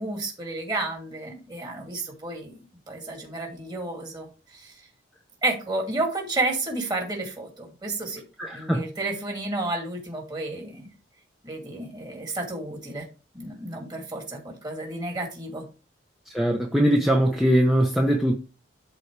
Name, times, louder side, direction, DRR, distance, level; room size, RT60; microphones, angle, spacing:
voice 1, 0.0-4.9 5.4-8.2 8.5-10.9 11.4-13.1 13.3-15.7, right 2 dB, 20° right, 2.5 m, -31 dB
voice 2, 8.4-8.8 16.3-18.4, equal, ahead, 0.9 m, -21 dB
12.5 x 4.3 x 3.4 m
head